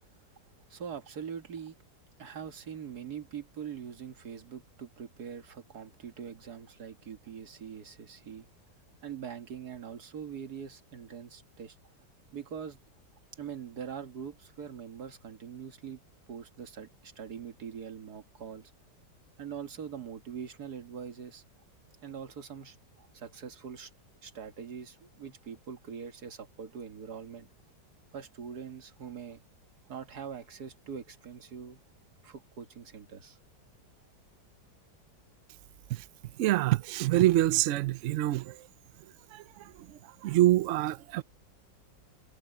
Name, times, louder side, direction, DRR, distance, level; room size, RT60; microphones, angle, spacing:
voice 1, 0.7-1.8 2.2-8.5 9.0-11.8 12.3-12.8 13.4-16.0 16.3-18.7 19.4-21.4 22.0-23.9 24.2-27.5 28.1-29.4 29.9-31.8 32.2-33.4, right 7 dB, 60° right, 2.1 m, -43 dB
voice 2, 36.4-38.5 39.3-39.4 40.2-41.2, right 15 dB, 80° right, 0.6 m, -25 dB
omnidirectional pair, 1.9 m